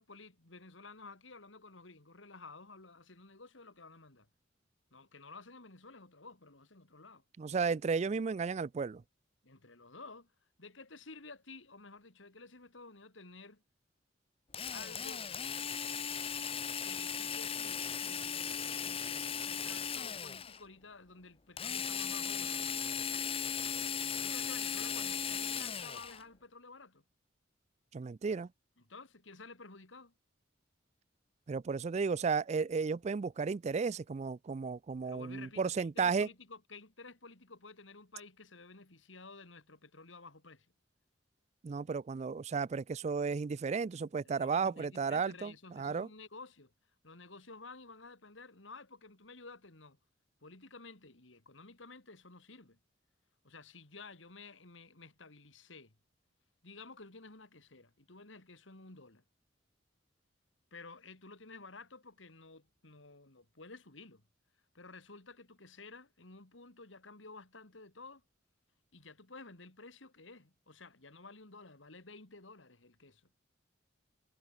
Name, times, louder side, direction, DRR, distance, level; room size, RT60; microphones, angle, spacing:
voice 1, 0.0-4.3 4.9-7.2 9.4-10.3 10.6-13.6 14.7-15.3 16.8-22.8 24.2-27.0 28.8-30.1 35.0-40.7 44.2-46.7 47.0-50.0 50.4-52.8 53.4-55.9 56.6-59.2 60.7-64.2 64.7-68.2 68.9-73.2, left 3 dB, 85° left, 2.9 m, -53 dB
voice 2, 7.4-9.0 27.9-28.5 31.5-36.3 41.6-46.1, right 5 dB, 35° right, 0.3 m, -34 dB
Drill, 14.5-20.6 21.6-26.2, left 7 dB, 30° left, 1.0 m, -37 dB
head